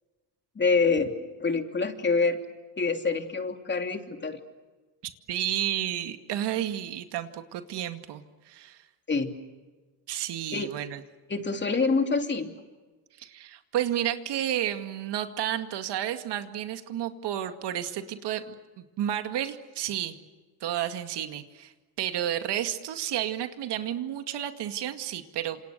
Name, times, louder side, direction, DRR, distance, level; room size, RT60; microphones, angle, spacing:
voice 1, 0.5-2.4 2.8-4.4 9.1-9.3 10.5-10.7 11.3-12.5, left 4 dB, 25° left, 5 dB, 3.0 m, -26 dB
voice 2, 5.0-8.9 10.1-11.0 13.2-20.2 20.6-21.7 22.0-25.6, right 11 dB, 60° right, 7 dB, 2.2 m, -31 dB
27.5 x 27.5 x 6.8 m, 1.3 s
supercardioid pair, 95°, 45 cm